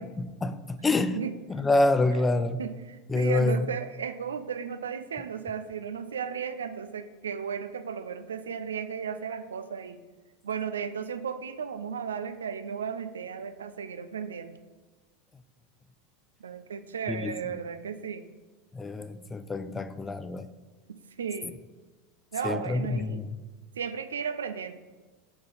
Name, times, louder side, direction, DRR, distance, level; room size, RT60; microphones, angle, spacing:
voice 1, 0.0-1.2 1.5-2.6 3.1-3.7 17.1-17.3 18.7-20.5 22.4-23.4, left 2 dB, 15° left, 0.3 m, -27 dB
voice 2, 2.6-10.0 10.4-14.6 16.4-18.2 19.7-19.9 20.9-21.5 22.3-23.2 23.7-24.7, right 7 dB, 80° right, 0.3 m, -35 dB
6.7 x 3.8 x 4.0 m
hypercardioid pair, 90°, 0 cm